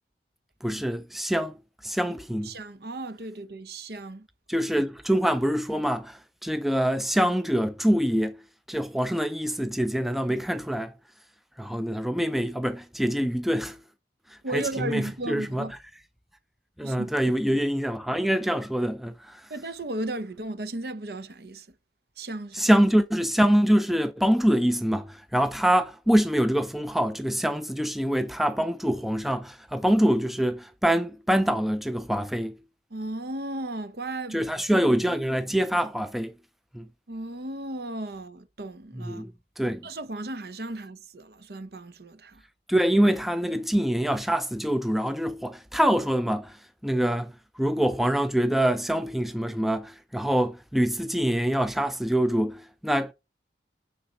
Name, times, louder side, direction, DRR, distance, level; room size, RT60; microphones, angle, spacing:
voice 1, 0.6-1.5 1.8-2.5 4.5-8.4 8.7-10.9 11.6-13.8 14.3-15.7 16.8-19.5 22.5-32.6 34.3-36.3 36.7-36.9 38.9-39.3 39.6-39.9 42.7-53.1, equal, ahead, 0.4 m, -25 dB
voice 2, 2.4-4.3 14.4-15.8 16.8-17.1 17.5-17.6 19.5-21.7 22.2-22.7 32.9-34.5 37.1-39.3 39.8-42.4, right 2 dB, 60° right, 0.8 m, -35 dB
9.5 x 4.0 x 4.4 m
head